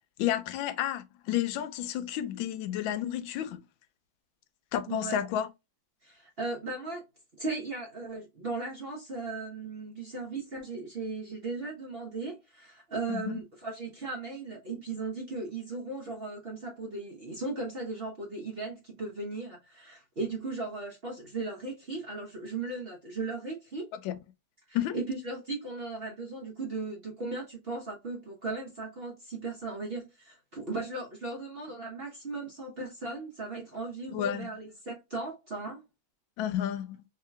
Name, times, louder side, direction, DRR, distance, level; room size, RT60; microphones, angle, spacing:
voice 1, 0.2-3.6 4.7-5.5 13.1-13.4 24.0-24.2 24.7-25.0 34.1-34.5 36.4-37.0, left 11 dB, 85° left, 1.3 m, -31 dB
voice 2, 4.9-5.2 6.0-7.0 7.4-23.9 24.7-35.8, right 3 dB, 45° right, 0.8 m, -37 dB
3.2 x 2.9 x 3.3 m
omnidirectional pair, 2.1 m